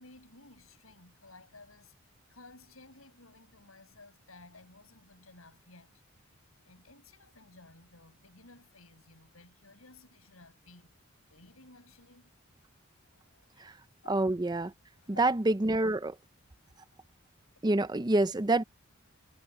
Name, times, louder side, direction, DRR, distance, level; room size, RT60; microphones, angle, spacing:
voice 1, 0.0-10.9 11.3-12.3 13.0-13.7 15.0-15.2 16.6-16.7, left 2 dB, 80° left, 7.7 m, -56 dB
voice 2, 14.1-14.7 15.2-16.2 17.6-18.6, right 2 dB, 20° right, 0.6 m, -27 dB
head